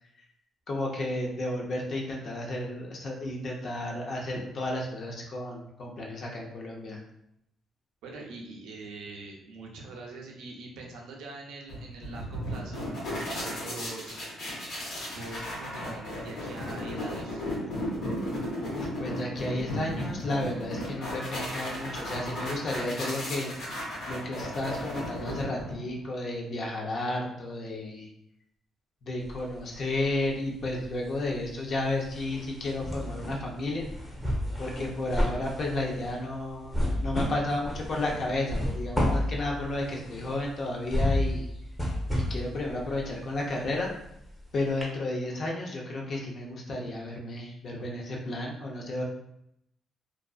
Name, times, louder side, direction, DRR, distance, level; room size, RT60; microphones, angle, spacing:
voice 1, 0.7-7.0 18.7-28.1 29.0-33.9 34.6-41.5 42.2-43.9 44.5-49.0, left 2 dB, 55° left, -1 dB, 0.6 m, -32 dB
voice 2, 8.0-14.1 15.1-17.4, right 2 dB, 85° right, 0 dB, 0.5 m, -43 dB
sound 1, 11.7-26.0, left 1 dB, 75° left, 1.0 m, -35 dB
sound 2, 29.2-30.3 30.6-44.4 44.8-44.9, left 1 dB, 5° left, 0.7 m, -32 dB
2.5 x 2.4 x 2.3 m, 0.78 s
cardioid pair, 90°, 0 cm